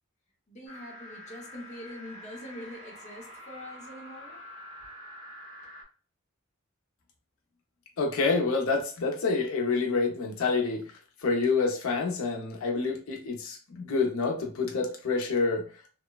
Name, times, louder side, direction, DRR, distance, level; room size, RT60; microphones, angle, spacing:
voice 1, 0.5-4.4, left 1 dB, 35° left, 0.7 m, -44 dB
sound 1, 0.7-5.8, left 1 dB, 60° right, 1.1 m, -46 dB
voice 2, 8.0-10.8 11.2-15.7, left 4 dB, 85° left, 0.6 m, -27 dB
3.0 x 2.0 x 2.3 m
head